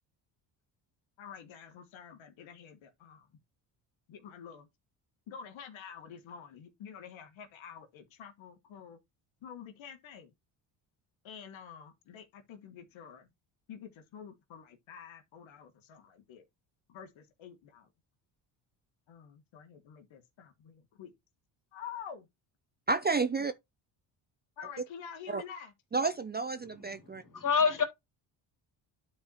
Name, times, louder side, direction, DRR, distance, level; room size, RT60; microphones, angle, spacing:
voice 1, 1.2-3.3 4.1-4.7 5.3-9.0 9.4-10.3 11.2-13.3 13.7-16.4 16.9-17.9 19.1-21.1 21.7-22.3 23.3-23.5 24.6-25.7 27.6-27.8, left 7 dB, 65° left, 1.6 m, -48 dB
voice 2, 22.9-23.5 25.3-25.4 25.9-27.2, right 4 dB, 20° right, 0.5 m, -30 dB
voice 3, 27.2-27.8, left 6 dB, 40° left, 3.0 m, -26 dB
12.0 x 4.4 x 2.9 m
supercardioid pair, 65°, 50 cm